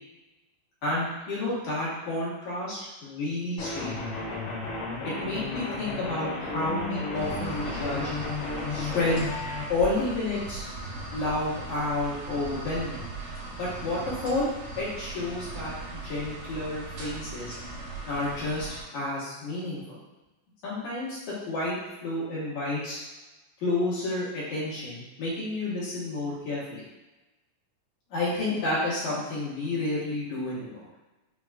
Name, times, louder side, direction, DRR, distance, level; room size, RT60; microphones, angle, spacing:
voice 1, 0.8-3.9 4.3-4.4 5.0-8.0 8.7-9.2 9.7-10.6 11.1-13.0 13.6-14.5 14.7-17.5 18.0-18.7 18.9-20.0 20.6-23.0 23.6-26.8 28.1-30.8, left 2 dB, 70° left, -9 dB, 2.5 m, -30 dB
sound 1, 3.6-9.6, left 3 dB, 90° left, 2.7 m, -33 dB
sound 2, 7.1-18.8, right 3 dB, 80° right, 2.5 m, -39 dB
6.1 x 2.2 x 2.3 m, 1.1 s
omnidirectional pair, 3.7 m